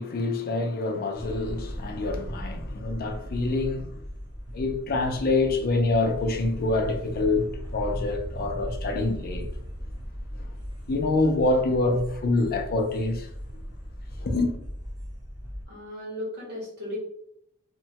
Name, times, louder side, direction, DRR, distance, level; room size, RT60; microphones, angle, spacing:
voice 1, 0.0-4.0 4.5-9.5 10.9-13.3 14.2-14.5, left 2 dB, 45° left, 0.4 m, -26 dB
sound 1, 1.1-15.7, equal, 20° right, 0.7 m, -37 dB
voice 2, 15.7-17.0, left 1 dB, 50° right, 1.5 m, -36 dB
2.9 x 2.2 x 2.7 m
head